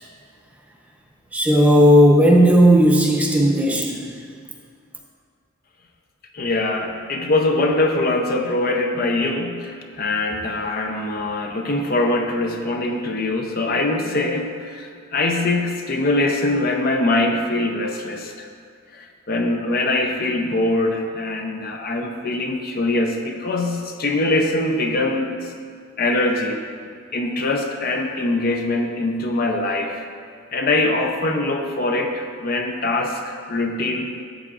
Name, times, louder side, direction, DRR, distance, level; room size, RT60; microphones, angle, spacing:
voice 1, 1.3-4.2, equal, 5° right, -1 dB, 0.8 m, -14 dB
voice 2, 6.3-18.5 18.9-25.5 26.0-26.6 27.1-30.0 30.5-34.1, left 2 dB, 45° left, 3 dB, 0.6 m, -23 dB
13.0 x 7.8 x 2.5 m, 2.1 s
head